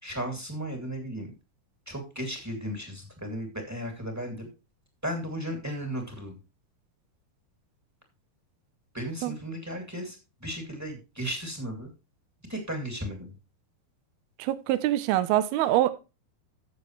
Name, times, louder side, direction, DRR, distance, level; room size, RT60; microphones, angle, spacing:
voice 1, 0.0-1.3 1.8-4.5 5.0-6.4 8.9-11.9 12.5-13.3, equal, 5° right, 1.7 m, -35 dB
voice 2, 14.4-15.9, right 14 dB, 80° right, 2.7 m, -24 dB
13.5 x 7.3 x 3.2 m
omnidirectional pair, 4.6 m